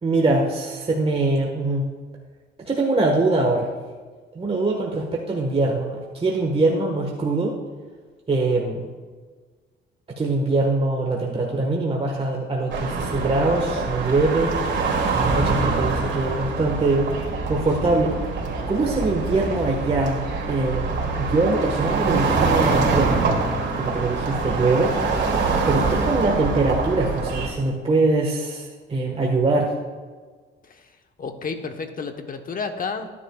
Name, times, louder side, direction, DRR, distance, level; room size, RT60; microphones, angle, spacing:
voice 1, 0.0-1.8 2.6-3.7 4.3-7.5 8.3-8.9 10.2-14.6 15.1-17.1 17.5-18.1 18.7-20.9 21.2-23.2 23.7-24.9 25.7-29.7, right 2 dB, 30° right, -1 dB, 1.4 m, -23 dB
sound 1, 12.7-27.5, right 4 dB, 65° right, 2.6 m, -24 dB
voice 2, 30.6-33.1, left 4 dB, 45° left, 6 dB, 1.1 m, -31 dB
17.5 x 10.0 x 2.4 m, 1.5 s
cardioid pair, 90°, 20 cm